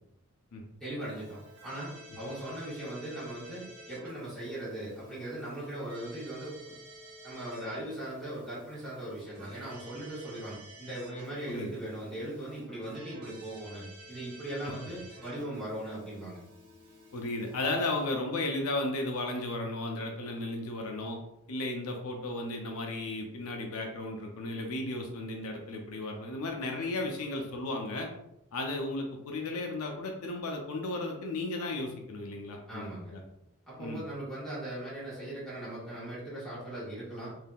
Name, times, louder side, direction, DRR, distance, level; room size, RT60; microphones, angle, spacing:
voice 1, 0.8-6.8 7.2-16.4 32.7-33.1 33.7-37.3, right 1 dB, ahead, -10 dB, 1.3 m, -39 dB
Keyboard (musical), 1.0-18.1, right 1 dB, 85° right, 1.0 m, -52 dB
voice 2, 17.1-21.2 21.5-28.1 28.5-33.2 33.8-34.0, left 2 dB, 75° left, 2 dB, 0.5 m, -34 dB
3.5 x 2.6 x 2.3 m, 0.82 s
head